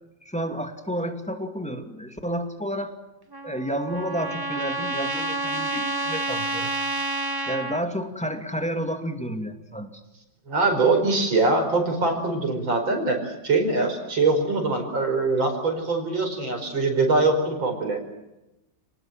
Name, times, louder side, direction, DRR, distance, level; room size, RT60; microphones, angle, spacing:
voice 1, 0.2-2.9 3.4-6.7 7.5-10.0, equal, 5° left, 6 dB, 2.3 m, -30 dB
Trumpet, 3.3-7.8, right 2 dB, 15° right, 0.9 m, -29 dB
voice 2, 10.5-18.0, right 3 dB, 80° right, 4 dB, 5.7 m, -23 dB
29.5 x 19.5 x 7.6 m, 0.96 s
omnidirectional pair, 2.1 m